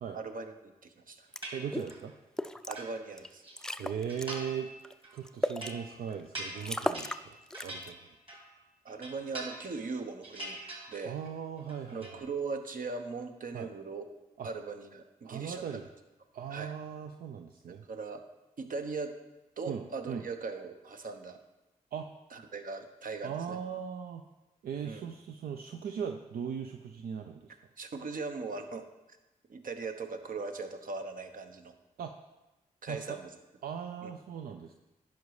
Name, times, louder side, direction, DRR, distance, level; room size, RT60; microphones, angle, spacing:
voice 1, 0.1-1.3 2.7-3.4 8.8-10.6 10.9-11.2 11.9-14.1 14.4-15.8 16.5-16.7 17.9-18.2 18.6-19.1 19.6-21.4 22.3-23.6 24.8-25.1 27.8-28.8 29.5-31.7 32.8-33.3 34.0-34.1, right 4 dB, 65° right, 6 dB, 1.0 m, -39 dB
sound 1, 1.3-1.4 1.7-1.9 2.4-2.8 3.2-3.3 3.6-4.4 4.8-5.7 6.2-6.3 6.6-7.2 7.5-7.9, left 1 dB, 5° left, 0.4 m, -35 dB
sound 2, 1.4-2.1 2.5-3.6 4.1-4.7 5.0-8.6 8.9-9.9 10.2-11.3 11.6-12.2, right 1 dB, 35° right, 2.6 m, -44 dB
voice 2, 1.5-2.1 3.8-4.7 5.1-7.4 7.6-8.0 11.0-12.2 13.5-13.7 14.4-14.5 15.2-15.8 16.3-17.8 19.7-20.2 21.9-22.1 23.2-24.2 24.6-27.5 32.0-32.1 32.9-33.2 33.6-34.7, right 7 dB, 80° right, 5 dB, 0.5 m, -38 dB
10.5 x 5.3 x 4.8 m, 1.0 s
cardioid pair, 55°, 15 cm